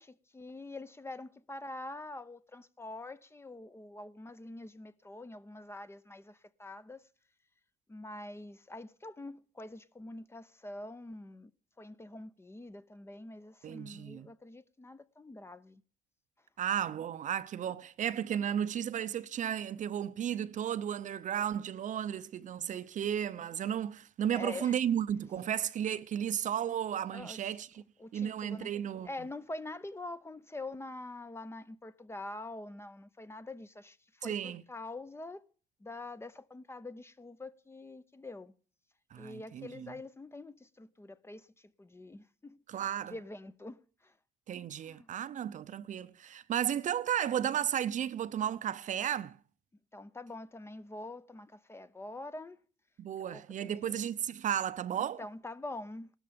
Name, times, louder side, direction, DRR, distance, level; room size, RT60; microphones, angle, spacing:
voice 1, 0.0-7.0 7.9-11.5 11.8-15.8 24.3-24.8 27.1-27.4 28.0-28.7 29.0-35.4 35.8-38.5 39.1-41.5 41.8-42.6 43.1-44.1 44.8-45.1 49.9-52.6 53.3-54.0 55.0-56.1, left 2 dB, 15° left, 0.7 m, -45 dB
voice 2, 13.6-14.3 16.6-27.8 28.1-29.1 34.2-34.6 39.1-39.9 42.7-43.1 44.5-49.4 53.0-55.2, right 9 dB, 45° right, 0.7 m, -34 dB
16.5 x 13.0 x 5.2 m
cardioid pair, 110°, 17 cm